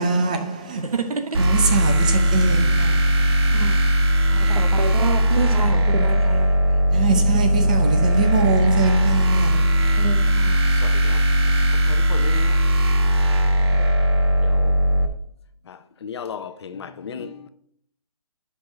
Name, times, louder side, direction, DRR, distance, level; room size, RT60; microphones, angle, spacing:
voice 1, 0.0-1.0 1.3-3.5 4.4-4.5 6.9-10.0, right 4 dB, 10° right, 0.3 m, -24 dB
voice 2, 0.8-1.6 3.5-3.8 4.3-6.8 7.1-7.3 7.6-7.7 10.0-10.5 13.7-13.9, right 5 dB, 70° right, 1.3 m, -28 dB
sound 1, 1.3-15.1, equal, 40° right, 1.0 m, -19 dB
voice 3, 10.8-11.2 11.9-12.6 14.4-14.7 15.7-17.5, left 6 dB, 45° left, 0.6 m, -35 dB
5.5 x 5.0 x 6.4 m
hypercardioid pair, 160°, 20 cm